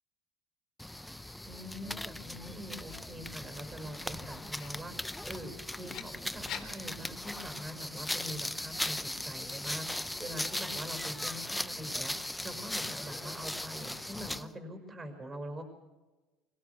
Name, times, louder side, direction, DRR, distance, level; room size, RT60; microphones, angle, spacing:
sound 1, 0.8-14.5, left 1 dB, 5° left, 0.7 m, -38 dB
voice 1, 1.5-15.6, equal, 25° right, 6 dB, 5.5 m, -44 dB
Writing, 2.9-7.9, left 8 dB, 55° left, 3.4 m, -49 dB
24.0 x 17.0 x 8.2 m, 1.2 s
supercardioid pair, 95°, 0 cm